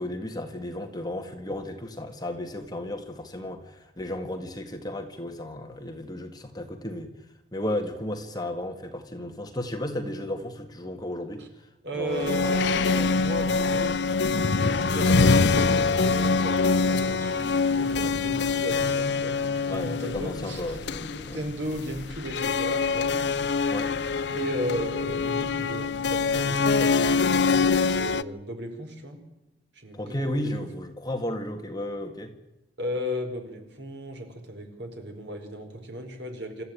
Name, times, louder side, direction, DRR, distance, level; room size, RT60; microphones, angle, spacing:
voice 1, 0.0-7.1 7.5-12.5 19.7-21.4 23.7-23.9 29.9-32.3, left 1 dB, 20° left, 5 dB, 1.9 m, -34 dB
voice 2, 11.8-14.0 14.4-20.8 21.1-23.1 24.3-29.2 29.7-30.5 32.8-36.6, equal, 60° right, 4 dB, 4.6 m, -35 dB
sound 1, 12.1-28.2, left 4 dB, 60° left, 0.7 m, -24 dB
27.0 x 14.0 x 8.9 m, 0.98 s
head